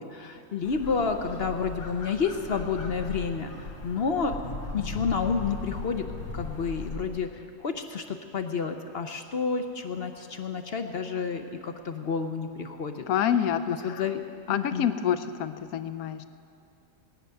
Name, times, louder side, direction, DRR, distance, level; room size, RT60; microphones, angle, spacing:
voice 1, 0.0-3.5 3.8-4.4 4.7-6.1 6.3-13.0 13.8-14.2 14.5-14.9, left 5 dB, 55° left, 6 dB, 0.7 m, -30 dB
sound 1, 0.6-7.1, left 3 dB, 90° left, 1.7 m, -38 dB
voice 2, 13.1-14.0 14.5-16.3, left 9 dB, 70° left, 12 dB, 1.1 m, -27 dB
19.0 x 6.6 x 9.1 m, 2.5 s
omnidirectional pair, 1.7 m